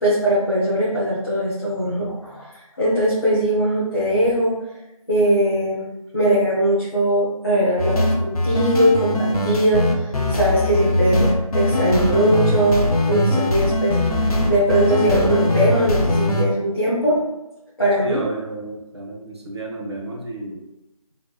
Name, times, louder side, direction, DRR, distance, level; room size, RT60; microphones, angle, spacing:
voice 1, 0.0-4.5 5.1-5.9 6.1-17.2 17.8-18.2, right 1 dB, 40° left, -10 dB, 0.8 m, -20 dB
sound 1, 7.8-16.4, left 1 dB, 75° left, 0.5 m, -21 dB
voice 2, 18.0-20.6, right 2 dB, 45° right, -1 dB, 0.6 m, -32 dB
3.1 x 2.1 x 2.2 m, 0.98 s
figure-of-eight pair, 170°, 19 cm